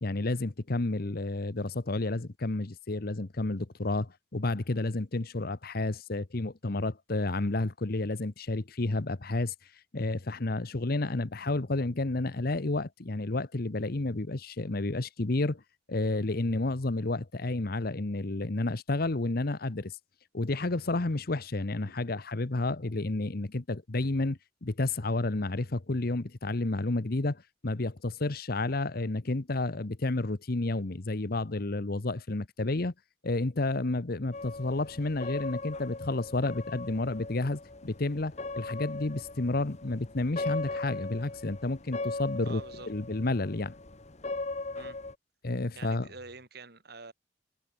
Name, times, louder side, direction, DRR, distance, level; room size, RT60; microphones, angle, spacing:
voice 1, 0.0-9.5 9.9-15.6 15.9-19.9 20.3-32.9 33.2-42.6 42.9-43.7 45.4-46.1, left 2 dB, 55° left, 1.0 m, -31 dB
sound 1, 34.3-45.1, left 3 dB, 40° left, 1.6 m, -39 dB
voice 2, 42.4-42.9 44.7-45.0 45.8-47.1, right 3 dB, 60° right, 4.0 m, -46 dB
head